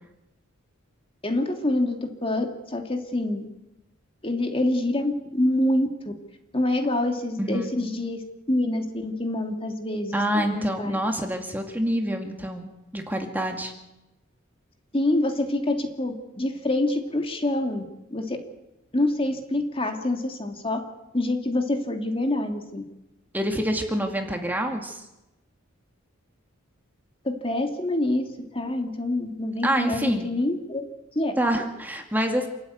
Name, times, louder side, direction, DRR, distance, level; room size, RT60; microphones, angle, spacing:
voice 1, 1.2-3.5 4.2-6.1 6.5-8.2 8.5-11.0 14.9-17.8 18.1-18.4 18.9-20.8 21.1-22.8 27.2-28.3 28.5-30.8 31.2-31.3, left 1 dB, 25° left, 5 dB, 2.3 m, -26 dB
voice 2, 7.4-7.7 10.1-13.7 23.3-25.0 29.6-30.3 31.4-32.5, right 1 dB, 10° right, 3 dB, 2.2 m, -27 dB
28.0 x 13.0 x 9.4 m, 0.96 s
head